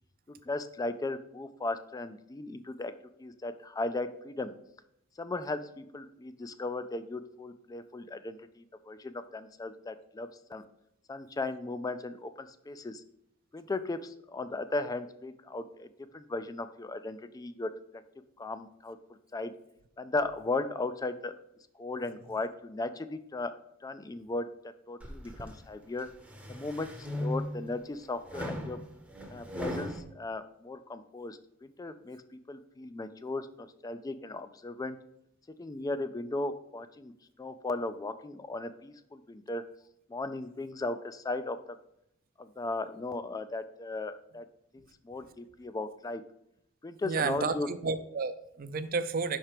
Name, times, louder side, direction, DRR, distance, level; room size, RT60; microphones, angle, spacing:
voice 1, 0.4-2.9 3.2-4.5 5.2-10.6 11.1-13.0 13.5-15.9 16.1-17.7 18.4-19.0 19.3-19.5 20.0-21.3 21.8-23.5 23.8-24.5 24.9-26.1 26.5-28.8 29.3-32.2 32.5-35.0 35.6-37.1 37.4-39.6 40.1-41.6 42.4-44.5 44.7-46.2 46.8-47.7, left 2 dB, 15° left, 11 dB, 0.3 m, -36 dB
sound 1, 25.0-25.6 26.1-27.7 28.3-30.0, equal, 5° right, 0.7 m, -37 dB
voice 2, 47.0-49.4, right 4 dB, 45° right, 11 dB, 0.5 m, -31 dB
5.9 x 4.4 x 4.9 m, 0.77 s
head